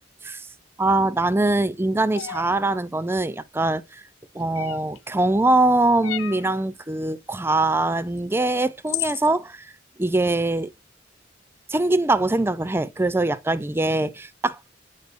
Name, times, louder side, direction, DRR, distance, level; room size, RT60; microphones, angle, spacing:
voice 1, 0.8-4.0 4.3-9.7 10.0-10.7 11.7-14.8, right 2 dB, 10° right, 0.4 m, -22 dB
sound 1, 2.1-2.5 4.5-5.0 6.0-6.5 8.2-8.3 8.9-9.3, left 15 dB, 85° left, 0.3 m, -31 dB
8.1 x 5.0 x 2.5 m
head